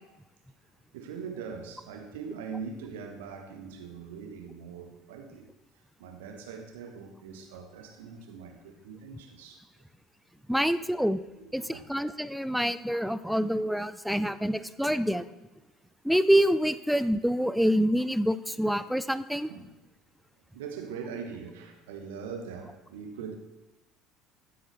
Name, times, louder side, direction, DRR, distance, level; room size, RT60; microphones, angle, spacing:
voice 1, 0.9-5.5 6.0-9.6 11.6-11.9 19.5-19.7 20.5-23.4, right 6 dB, 65° right, 4 dB, 1.6 m, -41 dB
voice 2, 10.5-11.2 11.5-15.2 16.0-19.5, equal, ahead, 13 dB, 0.5 m, -26 dB
15.5 x 7.9 x 3.5 m, 1.0 s
figure-of-eight pair, 60°, 0 cm